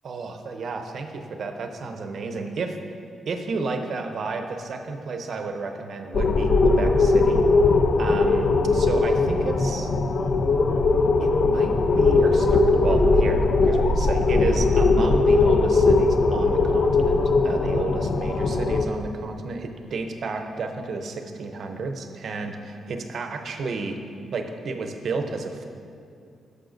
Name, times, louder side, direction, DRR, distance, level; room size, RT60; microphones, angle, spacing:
voice 1, 0.0-2.8 3.3-7.5 8.0-9.9 11.2-24.0 24.3-25.6, right 3 dB, 65° right, 5 dB, 0.6 m, -31 dB
sound 1, 6.1-18.8, left 3 dB, 60° left, 0.4 m, -20 dB
9.0 x 6.6 x 2.6 m, 2.5 s
cardioid pair, 70°, 0 cm